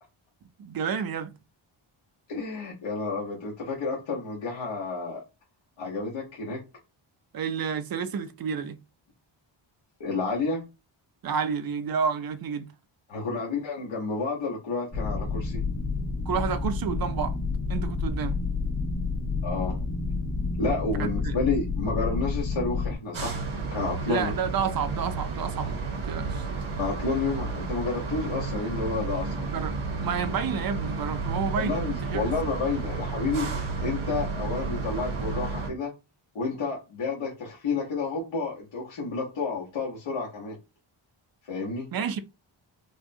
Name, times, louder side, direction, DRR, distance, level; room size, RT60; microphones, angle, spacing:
voice 1, 0.6-1.3 7.3-8.8 11.2-12.7 16.3-17.4 17.7-18.4 21.0-21.4 24.1-25.8 26.0-26.5 29.2-29.7 30.0-32.2 41.9-42.2, right 6 dB, 50° right, 0.5 m, -30 dB
voice 2, 2.3-5.2 5.8-6.6 10.0-10.6 13.1-15.6 19.4-19.8 20.6-23.4 23.7-24.3 26.8-29.5 31.6-35.9 36.3-40.6 41.5-41.9, left 4 dB, 70° left, 1.2 m, -30 dB
sound 1, 14.9-23.0, left 3 dB, 30° left, 1.5 m, -29 dB
sound 2, 23.1-35.7, right 4 dB, 80° right, 1.1 m, -32 dB
4.8 x 2.2 x 2.7 m
wide cardioid pair, 155°, 48 cm